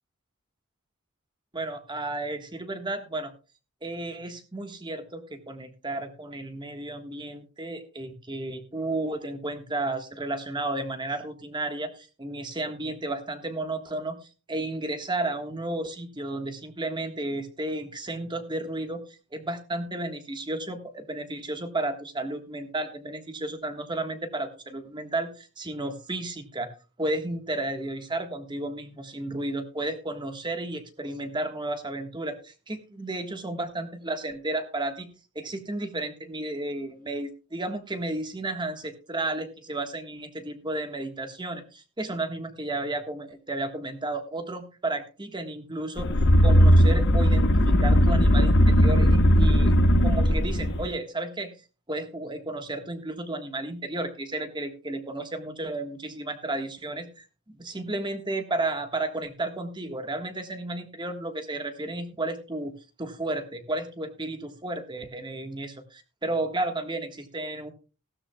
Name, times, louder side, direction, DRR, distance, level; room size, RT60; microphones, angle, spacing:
voice 1, 1.5-3.3 3.8-46.1 46.4-49.7 50.0-51.5 51.9-67.7, right 2 dB, 20° right, 7 dB, 1.5 m, -33 dB
sound 1, 46.0-50.9, equal, 50° left, 1.0 m, -18 dB
16.5 x 12.5 x 2.3 m, 0.33 s
head